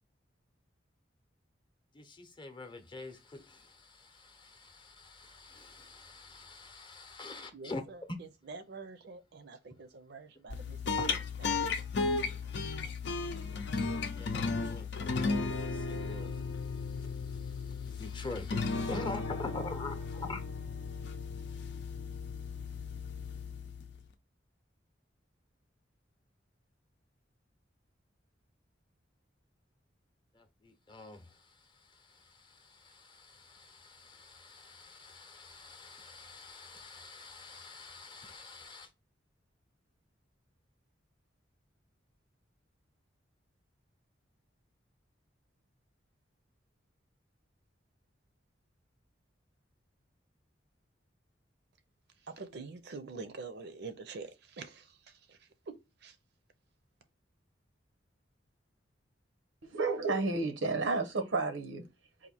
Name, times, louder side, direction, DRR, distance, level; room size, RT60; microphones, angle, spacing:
voice 1, 1.9-7.8 11.0-11.2 13.9-14.9 15.2-16.3 18.0-20.4 30.6-31.2 32.8-38.9, left 3 dB, 25° left, 0.7 m, -45 dB
voice 2, 7.5-10.8 11.4-11.5 52.3-54.3 54.6-54.8 55.7-55.8 56.0-56.1, right 4 dB, 60° right, 0.6 m, -45 dB
sound 1, 10.5-24.1, left 4 dB, 65° left, 0.6 m, -35 dB
voice 3, 59.7-61.8, right 3 dB, 90° right, 0.9 m, -31 dB
4.2 x 2.6 x 4.1 m
head